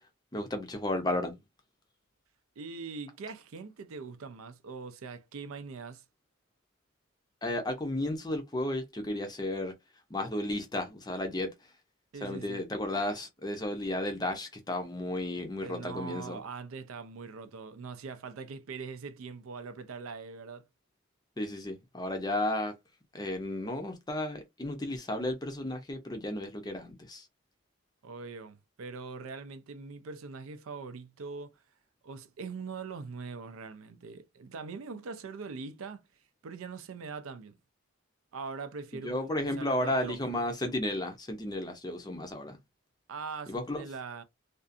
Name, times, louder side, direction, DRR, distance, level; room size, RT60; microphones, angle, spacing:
voice 1, 0.3-1.4 7.4-9.7 10.1-11.5 12.2-16.4 21.4-22.7 23.1-27.3 38.9-42.6 43.5-43.8, left 1 dB, 20° left, 0.5 m, -33 dB
voice 2, 2.6-6.0 12.1-12.6 15.6-20.6 28.0-31.6 32.0-36.0 36.4-37.6 38.3-40.2 43.1-44.2, right 4 dB, 80° right, 0.4 m, -42 dB
2.6 x 2.3 x 2.4 m
head